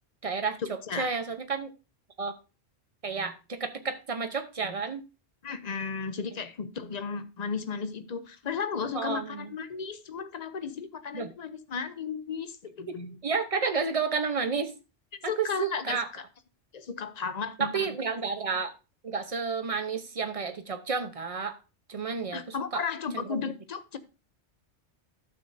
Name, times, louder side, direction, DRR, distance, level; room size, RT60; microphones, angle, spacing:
voice 1, 0.2-1.7 2.2-2.3 3.0-5.0 8.9-9.5 11.1-11.3 12.9-14.7 15.2-16.1 17.6-18.7 19.0-21.6 21.9-22.8 23.1-23.4, right 5 dB, 35° right, 0.9 m, -31 dB
voice 2, 5.4-13.2 15.3-16.2 16.7-17.9 22.3-24.0, left 6 dB, 40° left, 0.7 m, -34 dB
12.0 x 7.0 x 2.7 m
omnidirectional pair, 1.2 m